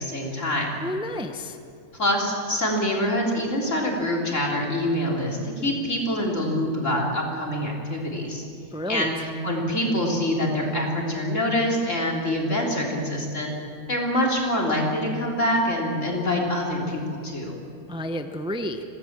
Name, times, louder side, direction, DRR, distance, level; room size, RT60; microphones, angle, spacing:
voice 1, 0.0-0.8 2.0-8.4 8.9-9.1 9.4-13.5 13.9-17.6, left 1 dB, 60° left, -2 dB, 4.1 m, -25 dB
voice 2, 0.8-1.6 8.7-9.1 17.9-18.8, equal, 5° right, 6 dB, 0.8 m, -30 dB
26.5 x 18.0 x 7.5 m, 2.5 s
omnidirectional pair, 1.4 m